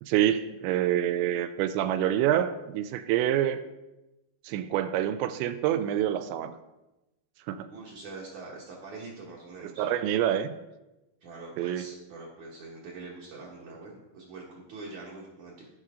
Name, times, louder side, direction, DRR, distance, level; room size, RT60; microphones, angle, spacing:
voice 1, 0.0-3.6 4.4-6.6 7.5-7.7 9.6-10.5 11.6-11.9, right 11 dB, 85° right, 11 dB, 2.8 m, -27 dB
voice 2, 7.6-9.9 11.2-15.7, right 3 dB, 60° right, -4 dB, 2.1 m, -44 dB
16.5 x 5.4 x 3.7 m, 0.99 s
omnidirectional pair, 5.3 m